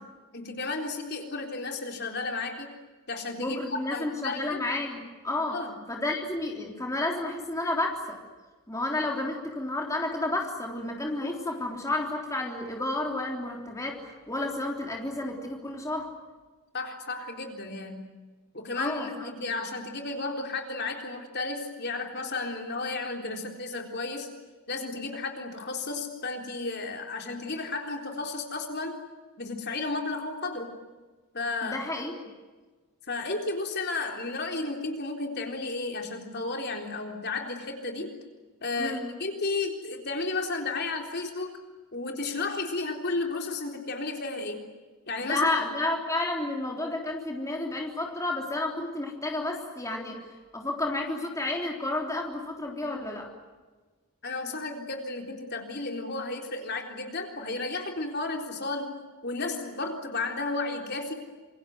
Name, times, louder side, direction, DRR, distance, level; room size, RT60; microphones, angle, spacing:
voice 1, 0.3-2.7 3.1-4.6 5.5-5.7 16.7-18.1 18.5-24.3 24.7-29.0 29.4-30.8 31.3-31.8 33.1-38.1 38.6-41.6 41.9-44.6 45.1-45.6 54.2-59.0 59.2-61.1, left 3 dB, 50° left, 3 dB, 3.9 m, -33 dB
voice 2, 3.4-5.6 5.9-8.2 8.7-16.1 18.8-19.3 31.6-32.2 38.8-39.1 45.3-50.2 50.5-53.3, left 2 dB, 15° left, 0 dB, 3.6 m, -31 dB
27.5 x 24.0 x 7.9 m, 1.3 s
head